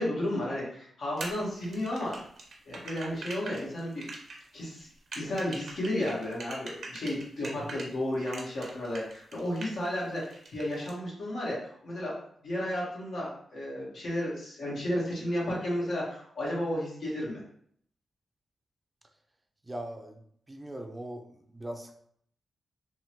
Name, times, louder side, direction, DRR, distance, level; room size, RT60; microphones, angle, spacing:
voice 1, 0.0-2.2 2.6-4.1 4.5-4.9 5.1-12.2 12.4-17.4, left 1 dB, 70° left, -5 dB, 1.3 m, -33 dB
sound 1, 1.2-7.9 8.3-9.9 10.2-10.9, right 2 dB, 65° right, 0.7 m, -42 dB
voice 2, 19.7-20.2 20.5-21.2 21.5-22.0, right 1 dB, 20° right, 4 dB, 0.5 m, -40 dB
3.4 x 2.1 x 3.0 m, 0.64 s
cardioid pair, 65°, 0 cm